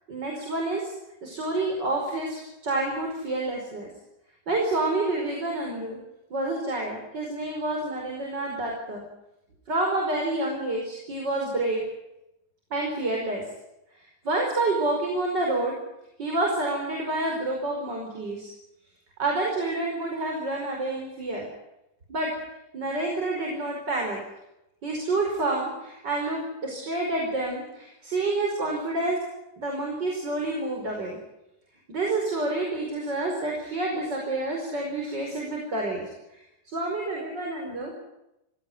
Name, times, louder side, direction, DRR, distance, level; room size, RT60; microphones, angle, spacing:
voice 1, 0.1-0.9 1.2-3.9 4.5-6.0 6.3-9.0 9.7-11.8 12.7-13.4 14.2-15.8 16.2-18.5 19.2-21.5 22.1-22.3 22.7-24.2 24.8-29.2 29.6-31.2 31.9-36.0 36.7-37.9, right 2 dB, 70° right, 0 dB, 5.8 m, -28 dB
25.0 x 17.0 x 9.7 m, 0.88 s
omnidirectional pair, 2.0 m